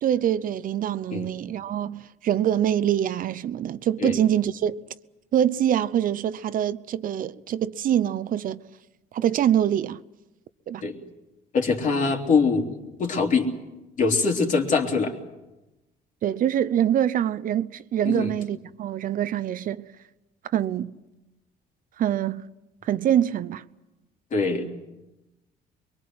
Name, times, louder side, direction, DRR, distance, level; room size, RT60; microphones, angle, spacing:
voice 1, 0.0-4.8 5.3-8.6 9.1-10.0 10.7-10.8 16.2-19.9 20.5-21.0 22.0-22.4 22.8-23.7, right 10 dB, 55° right, 0.7 m, -24 dB
voice 2, 11.5-13.5 14.0-15.2 18.0-18.3 24.3-24.7, left 4 dB, 50° left, 3.4 m, -23 dB
23.0 x 23.0 x 7.8 m
cardioid pair, 110°, 17 cm